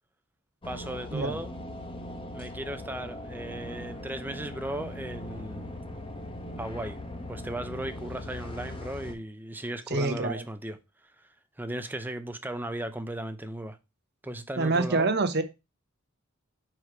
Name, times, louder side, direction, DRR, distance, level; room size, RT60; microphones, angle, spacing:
sound 1, 0.6-9.1, left 1 dB, 25° left, 0.9 m, -40 dB
voice 1, 0.6-1.5 2.3-5.7 6.6-7.0 7.3-10.8 11.6-13.8 14.2-15.1, right 1 dB, 10° right, 0.6 m, -36 dB
voice 2, 9.9-10.4 14.6-15.4, right 3 dB, 50° right, 0.9 m, -26 dB
4.9 x 4.6 x 4.7 m
head